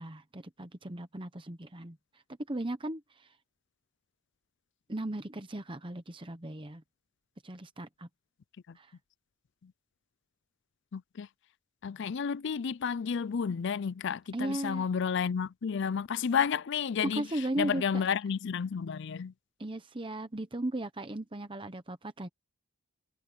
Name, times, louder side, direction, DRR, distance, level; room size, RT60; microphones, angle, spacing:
voice 1, 0.0-2.0 2.5-3.3 4.9-6.8 7.4-8.1 8.7-8.9 14.3-14.9 17.0-18.0 19.6-22.3, right 1 dB, 20° right, 0.9 m, -36 dB
voice 2, 10.9-11.3 11.8-19.3, left 6 dB, 55° left, 0.4 m, -31 dB
head